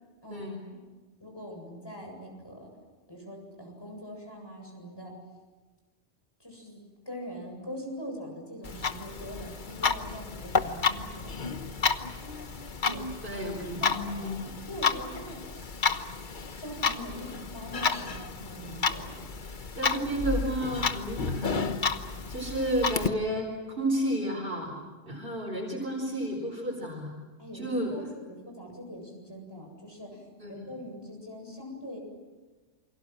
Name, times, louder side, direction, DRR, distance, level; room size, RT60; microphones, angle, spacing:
voice 1, 0.2-0.6 1.2-2.7 3.1-5.1 6.4-11.6 12.7-13.3 13.8-14.4 14.7-15.4 16.6-19.3 27.4-32.0, equal, 20° left, 2 dB, 7.7 m, -42 dB
Clock, 8.6-23.1, left 5 dB, 45° left, 1.3 m, -31 dB
voice 2, 13.2-14.5 19.8-21.7 22.3-24.8 25.0-27.1 27.5-27.9 30.4-30.7, right 1 dB, 50° right, -3 dB, 4.8 m, -31 dB
28.5 x 24.5 x 7.6 m, 1.3 s
omnidirectional pair, 1.1 m